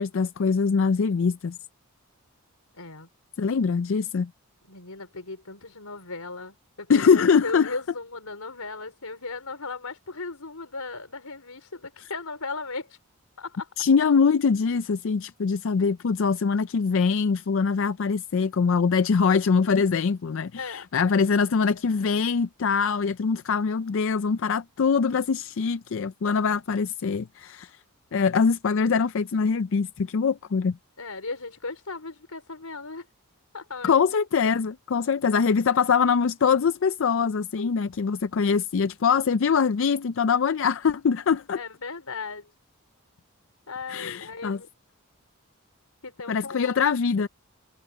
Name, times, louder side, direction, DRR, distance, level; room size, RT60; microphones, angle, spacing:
voice 1, 0.0-1.6 3.4-4.3 6.9-7.7 13.8-27.7 28.1-30.8 33.8-41.6 43.9-44.6 46.3-47.3, left 5 dB, 60° left, 0.4 m, -23 dB
voice 2, 2.7-3.1 4.6-13.0 13.4-13.7 20.5-21.1 31.0-33.1 33.5-34.0 37.6-37.7 41.5-42.5 43.7-44.7 46.0-46.7, left 3 dB, 85° left, 4.7 m, -37 dB
head